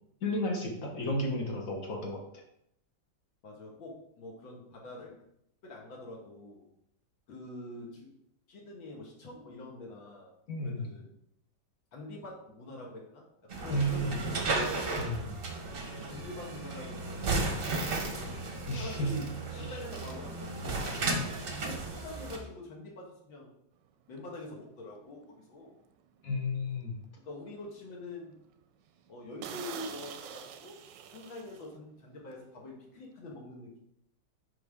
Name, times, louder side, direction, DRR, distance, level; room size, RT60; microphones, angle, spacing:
voice 1, 0.2-2.4 10.5-10.9 13.7-14.2 14.9-15.4 18.7-19.2 19.6-19.8 26.2-27.0, equal, 50° left, 1 dB, 1.4 m, -33 dB
voice 2, 3.4-5.1 5.6-6.6 7.3-8.1 8.5-10.3 10.6-11.1 11.9-13.2 13.5-14.6 16.0-18.3 18.8-20.8 21.6-23.5 24.1-25.7 27.2-28.4 29.1-30.7 31.1-33.8, left 2 dB, 75° left, -2 dB, 2.1 m, -45 dB
sound 1, 13.5-22.4, right 3 dB, 40° right, 0.8 m, -34 dB
sound 2, 24.2-24.3 24.8-25.1 25.6-25.7 26.0-26.1 26.6-27.2 27.6-27.7 28.1-28.2 28.5-28.6 29.0-29.1 29.4-32.4, right 8 dB, 75° right, 1.2 m, -45 dB
10.0 x 3.7 x 3.6 m, 0.75 s
omnidirectional pair, 2.2 m